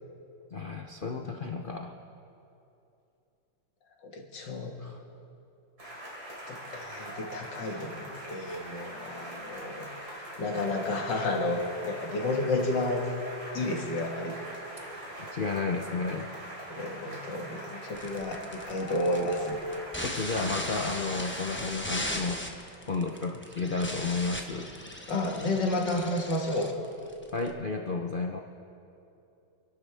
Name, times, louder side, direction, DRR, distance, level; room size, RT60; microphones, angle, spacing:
voice 1, 0.5-1.9 4.4-5.0 15.2-16.3 20.0-22.4 22.8-24.7 27.3-28.4, left 4 dB, 85° left, 3 dB, 0.4 m, -32 dB
voice 2, 4.0-4.7 6.5-9.9 10.4-13.1 13.5-14.4 16.8-19.6 25.1-26.7, left 2 dB, 65° left, 1 dB, 2.3 m, -31 dB
sound 1, 5.8-21.8, right 1 dB, 50° right, 4.0 m, -42 dB
sound 2, 17.9-27.5, left 1 dB, 10° left, 0.5 m, -38 dB
27.5 x 12.0 x 3.5 m, 2.7 s
omnidirectional pair, 2.1 m